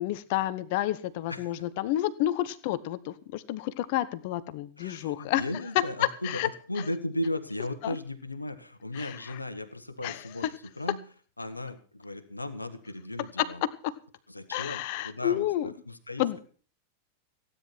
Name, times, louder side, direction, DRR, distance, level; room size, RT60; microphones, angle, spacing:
voice 1, 0.0-5.4 5.7-5.8 6.2-6.5 7.8-8.0 8.9-9.2 10.0-10.2 13.4-13.9 14.5-15.7 16.2-16.4, left 14 dB, 50° left, 16 dB, 1.1 m, -30 dB
voice 2, 4.8-11.0 11.4-13.6 14.3-16.4, left 1 dB, 85° left, 10 dB, 1.5 m, -36 dB
16.5 x 9.9 x 6.0 m, 0.41 s
figure-of-eight pair, 90°, 0 cm